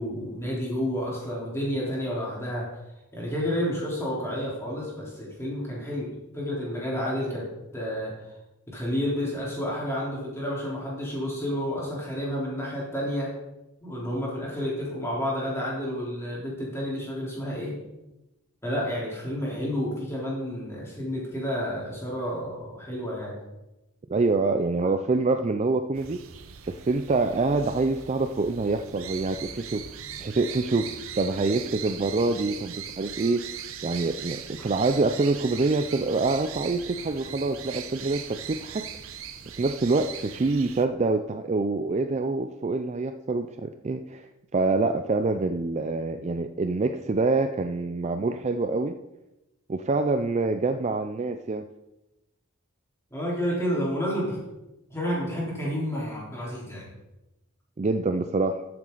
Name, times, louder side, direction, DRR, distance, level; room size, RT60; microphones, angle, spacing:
voice 1, 0.0-2.7 3.1-7.4 7.7-8.1 8.7-13.3 13.8-17.8 18.6-23.4 53.1-54.4 54.9-56.9, equal, 10° left, -5 dB, 3.6 m, -30 dB
voice 2, 24.1-26.2 26.7-29.8 30.2-30.9 31.2-33.5 33.8-38.9 39.6-44.3 44.5-49.0 49.7-51.7 57.8-58.7, right 3 dB, 30° right, 8 dB, 0.4 m, -26 dB
sound 1, 25.9-40.8, right 8 dB, 65° right, 0.8 m, -40 dB
13.5 x 7.4 x 4.0 m, 0.96 s
head